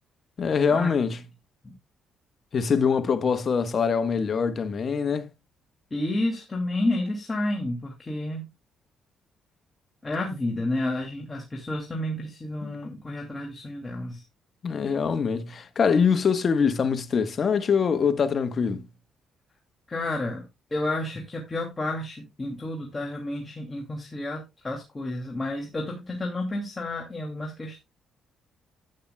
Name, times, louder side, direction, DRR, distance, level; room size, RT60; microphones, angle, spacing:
voice 1, 0.4-1.2 2.5-5.3 12.6-12.7 14.6-18.9, left 6 dB, 45° left, 1.2 m, -24 dB
voice 2, 5.9-8.4 10.0-14.2 19.9-20.5 20.7-27.8, left 1 dB, 25° left, 2.5 m, -30 dB
11.5 x 8.8 x 2.3 m
cardioid pair, 90°, 0 cm